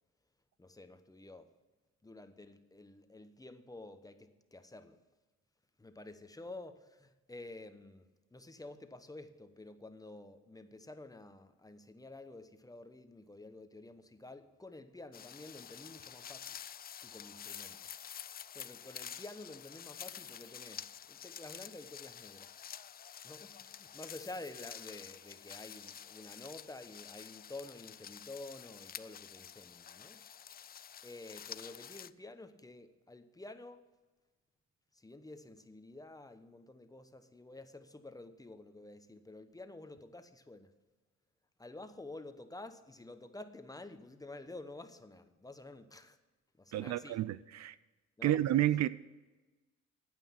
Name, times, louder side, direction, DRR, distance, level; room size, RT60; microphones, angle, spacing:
voice 1, 0.6-1.5 2.0-5.0 5.8-16.6 17.0-17.8 18.5-22.6 23.0-30.2 31.0-33.9 34.9-40.7 41.6-46.2 46.6-47.2 48.2-48.4, left 2 dB, 10° left, 0.9 m, -50 dB
sound 1, 15.1-32.1, left 9 dB, 30° left, 0.4 m, -49 dB
voice 2, 46.7-47.8 48.2-48.9, right 13 dB, 60° right, 0.5 m, -30 dB
9.1 x 9.1 x 5.8 m
cardioid pair, 90°, 30 cm